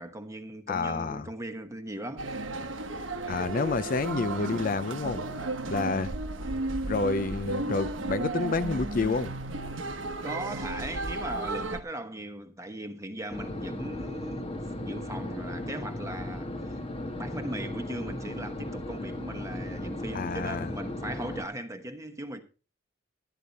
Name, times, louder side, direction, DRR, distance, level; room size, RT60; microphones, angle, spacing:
voice 1, 0.0-2.3 5.6-6.0 10.2-22.4, right 1 dB, 15° right, 1.1 m, -39 dB
voice 2, 0.7-1.3 3.3-5.2 5.7-6.1 6.8-9.3 20.1-20.7, left 4 dB, 45° left, 0.4 m, -29 dB
sound 1, 2.2-11.8, right 2 dB, 80° right, 1.0 m, -34 dB
sound 2, 13.3-21.4, left 1 dB, 30° left, 1.2 m, -36 dB
12.5 x 10.0 x 4.0 m
head